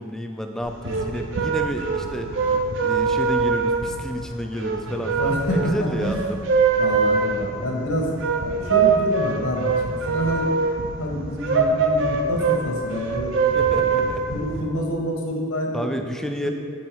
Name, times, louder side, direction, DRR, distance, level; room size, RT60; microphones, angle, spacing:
voice 1, 0.0-2.3 2.8-6.4 13.5-14.3 15.7-16.5, equal, ahead, 4 dB, 0.3 m, -30 dB
sound 1, 0.6-14.6, right 4 dB, 55° right, 0.6 m, -23 dB
voice 2, 4.9-6.2 6.8-10.7 11.0-13.3 13.7-14.0 14.3-15.9 16.4-16.5, equal, 70° left, -1 dB, 1.2 m, -27 dB
7.5 x 5.5 x 4.6 m, 2.1 s
head